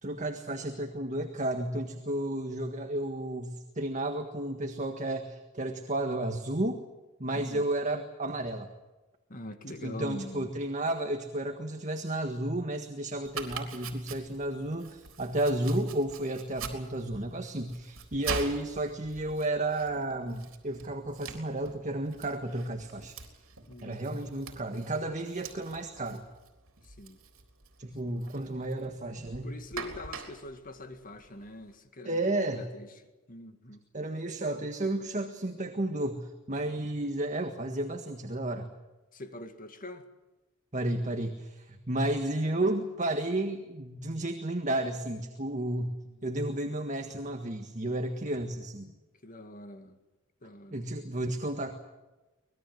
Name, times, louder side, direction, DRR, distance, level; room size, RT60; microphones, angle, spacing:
voice 1, 0.0-6.8 7.2-8.7 9.7-23.2 23.8-26.2 27.8-29.5 32.0-32.7 33.9-38.7 40.7-46.0 46.2-48.9 50.7-51.7, right 1 dB, 35° right, 5 dB, 1.6 m, -32 dB
voice 2, 7.3-7.6 9.3-10.5 23.7-24.3 26.8-27.2 28.0-28.1 29.4-32.9 33.3-33.8 39.1-40.0 46.0-46.1 49.2-50.0 50.4-50.8, left 1 dB, 40° left, 7 dB, 2.0 m, -44 dB
Domestic sounds home sounds, 13.2-31.7, right 5 dB, 70° right, 3.6 m, -44 dB
25.0 x 20.5 x 7.9 m, 1.1 s
head